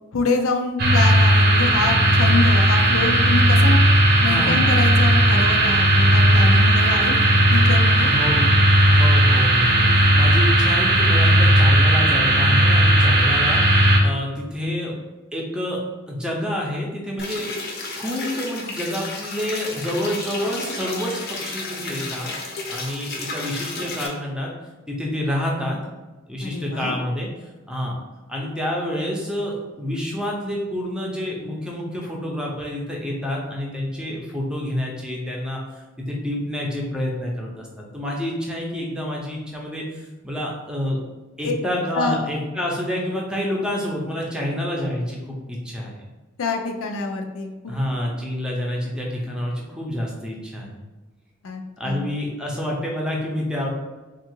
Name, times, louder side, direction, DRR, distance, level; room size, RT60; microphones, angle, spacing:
voice 1, 0.1-3.8 4.2-7.1 7.5-8.1 26.4-26.9 41.4-41.6 41.9-42.3 46.4-47.7 51.4-52.1, left 3 dB, 85° left, 3 dB, 0.5 m, -26 dB
sound 1, 0.8-14.0, right 1 dB, 50° right, 0.7 m, -16 dB
voice 2, 4.2-4.6 6.8-7.0 8.0-8.5 8.8-15.0 15.3-15.8 16.1-17.7 18.0-22.3 22.7-24.5 24.9-25.8 26.3-27.3 27.7-28.0 28.3-35.6 36.0-41.0 41.4-46.1 47.7-50.8 51.8-53.7, left 1 dB, 5° right, -2 dB, 0.6 m, -28 dB
sound 2, 17.2-24.1, left 3 dB, 50° left, 0.7 m, -32 dB
3.6 x 2.4 x 4.5 m, 1.2 s
head